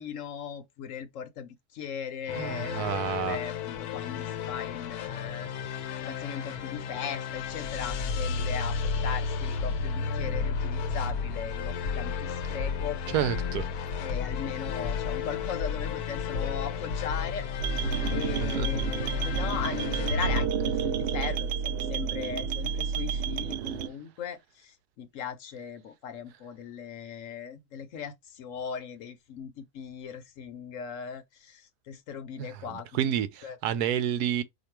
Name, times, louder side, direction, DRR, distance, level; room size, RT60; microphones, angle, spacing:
voice 1, 0.0-2.9 3.2-5.5 6.0-8.8 9.0-13.0 14.0-33.6, left 7 dB, 65° left, 1.0 m, -38 dB
sound 1, 2.3-20.5, left 5 dB, 80° left, 1.2 m, -32 dB
voice 2, 2.4-3.4 13.1-13.7 18.6-18.7 32.4-34.4, right 10 dB, 85° right, 1.2 m, -29 dB
sound 2, 17.6-23.9, right 7 dB, 70° right, 0.6 m, -30 dB
5.0 x 2.3 x 4.5 m
omnidirectional pair, 1.6 m